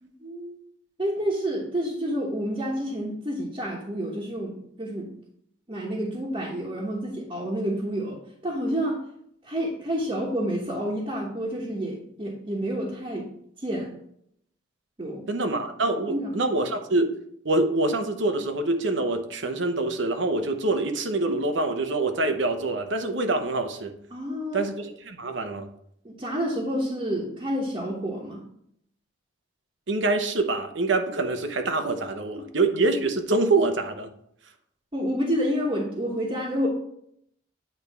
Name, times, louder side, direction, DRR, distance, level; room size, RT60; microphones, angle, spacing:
voice 1, 0.0-0.6 1.0-5.1 5.7-8.2 8.4-9.0 9.4-13.3 13.6-13.9 15.0-15.2 16.1-16.3 24.1-24.6 26.0-28.4 32.3-32.4 34.9-36.7, equal, 25° right, -5 dB, 1.1 m, -29 dB
voice 2, 15.3-23.9 24.5-25.7 29.9-34.1, right 2 dB, 75° right, 7 dB, 0.9 m, -25 dB
9.0 x 3.4 x 4.7 m, 0.70 s
head